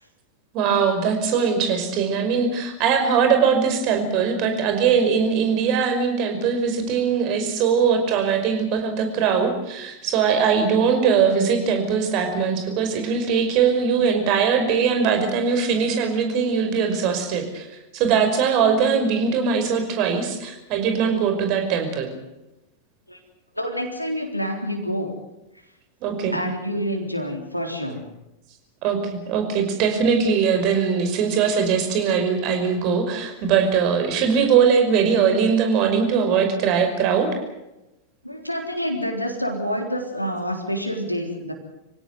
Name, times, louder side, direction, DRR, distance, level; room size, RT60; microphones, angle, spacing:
voice 1, 0.5-17.7 17.9-22.1 26.0-26.4 28.8-37.4, right 6 dB, 40° right, 6 dB, 5.5 m, -21 dB
voice 2, 23.6-25.1 26.3-28.1 38.2-41.5, equal, 90° left, 2 dB, 3.6 m, -27 dB
27.0 x 17.0 x 8.1 m, 0.95 s
figure-of-eight pair, 90°, 0 cm